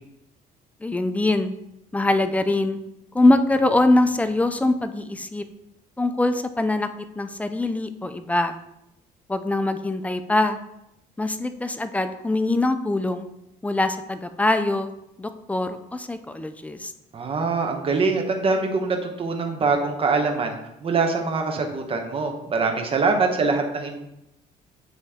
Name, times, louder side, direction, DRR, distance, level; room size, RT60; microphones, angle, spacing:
voice 1, 0.8-1.5 1.9-2.8 3.1-5.4 6.0-6.9 7.2-8.6 9.3-10.6 11.2-13.3 13.6-14.9 15.2-16.9, left 2 dB, 10° left, 9 dB, 0.4 m, -23 dB
voice 2, 17.1-24.0, right 4 dB, 35° right, 4 dB, 1.0 m, -24 dB
9.2 x 3.1 x 3.6 m, 0.84 s
cardioid pair, 110°, 17 cm